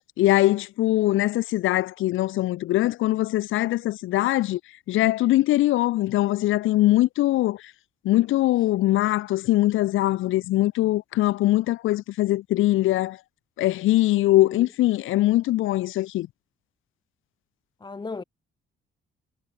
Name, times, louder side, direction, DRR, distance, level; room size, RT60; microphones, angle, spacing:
voice 1, 0.2-4.6 4.9-7.7 8.0-13.2 13.6-16.3, left 16 dB, 80° left, 0.7 m, -22 dB
voice 2, 14.1-14.7 17.8-18.2, left 4 dB, 20° left, 0.9 m, -37 dB
cardioid pair, 90°, 20 cm